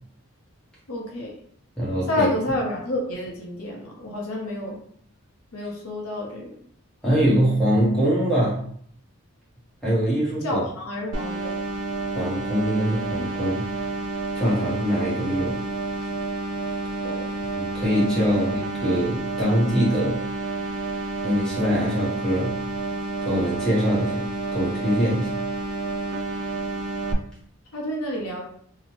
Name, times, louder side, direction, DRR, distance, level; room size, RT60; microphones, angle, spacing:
voice 1, 0.9-1.4 2.1-4.8 5.5-6.5 10.4-11.6 17.0-17.4 18.3-18.4 27.7-28.4, left 1 dB, 85° left, -1 dB, 0.8 m, -29 dB
voice 2, 1.8-2.3 7.0-8.6 9.8-10.6 12.1-13.7 14.3-15.6 17.6-20.2 21.2-22.6 23.2-25.4, equal, 5° left, -8 dB, 0.9 m, -23 dB
sound 1, 11.1-27.1, right 3 dB, 85° right, 0.4 m, -29 dB
2.8 x 2.1 x 2.9 m, 0.62 s
head